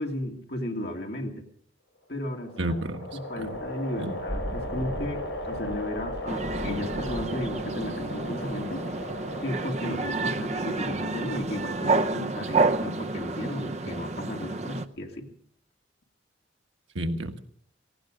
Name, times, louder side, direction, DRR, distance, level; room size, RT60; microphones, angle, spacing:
voice 1, 0.0-1.4 2.1-2.8 3.1-8.9 9.4-15.3, left 1 dB, 55° left, 1 dB, 2.4 m, -34 dB
sound 1, 2.0-10.2, left 1 dB, 75° left, 7.6 m, -37 dB
voice 2, 2.6-3.5 4.0-4.2 16.9-17.4, right 1 dB, 90° right, 5 dB, 1.6 m, -31 dB
Thunder / Rain, 3.3-12.9, equal, 55° right, 2.1 m, -41 dB
sound 2, 6.3-14.9, right 3 dB, 35° right, 0.6 m, -29 dB
18.0 x 16.0 x 5.0 m, 0.62 s
head